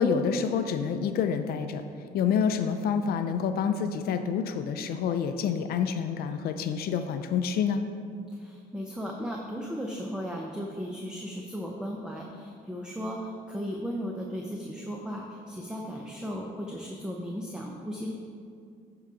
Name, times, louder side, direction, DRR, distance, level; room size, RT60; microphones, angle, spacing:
voice 1, 0.0-1.8 2.1-7.8, left 6 dB, 65° left, 8 dB, 0.5 m, -27 dB
voice 2, 8.3-18.1, equal, 5° right, 0 dB, 0.7 m, -36 dB
11.0 x 3.9 x 4.9 m, 2.3 s
cardioid pair, 110°, 17 cm